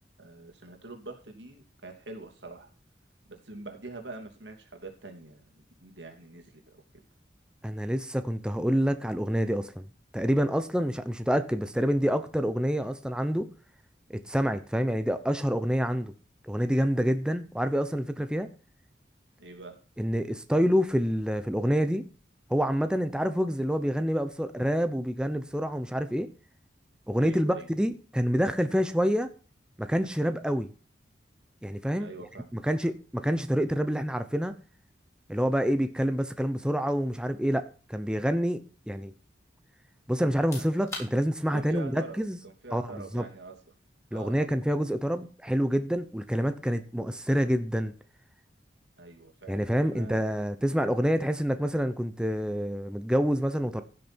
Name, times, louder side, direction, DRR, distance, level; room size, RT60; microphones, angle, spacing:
voice 1, 0.2-2.7 3.3-6.8 19.4-19.7 27.2-27.7 32.0-32.6 40.6-40.7 41.5-43.6 44.1-44.5 49.0-50.2, right 3 dB, 80° right, 3.0 m, -44 dB
voice 2, 7.6-9.9 10.1-13.5 14.1-16.1 16.4-18.5 20.0-22.1 22.5-26.3 27.1-29.3 29.8-30.7 31.6-32.1 32.5-34.5 35.3-37.6 37.9-39.1 40.1-42.4 42.7-42.8 43.1-43.2 44.1-47.9 49.5-53.8, equal, 5° right, 0.8 m, -27 dB
sound 1, 40.3-52.9, left 2 dB, 15° left, 5.4 m, -52 dB
15.5 x 6.7 x 4.5 m
head